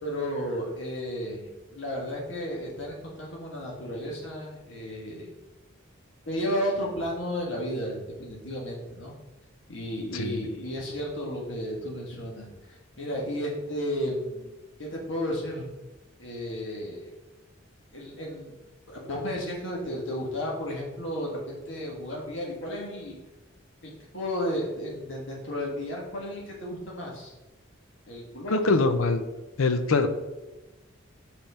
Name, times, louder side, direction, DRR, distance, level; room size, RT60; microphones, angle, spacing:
voice 1, 0.0-5.3 6.3-9.1 9.7-14.5 14.8-15.7 16.2-17.1 17.9-18.5 18.9-23.2 23.8-27.3 28.1-28.7, equal, 60° left, -2 dB, 1.7 m, -33 dB
voice 2, 10.1-10.4 28.5-29.2 29.6-30.1, left 3 dB, 75° left, 8 dB, 0.6 m, -23 dB
5.4 x 4.4 x 5.5 m, 1.1 s
head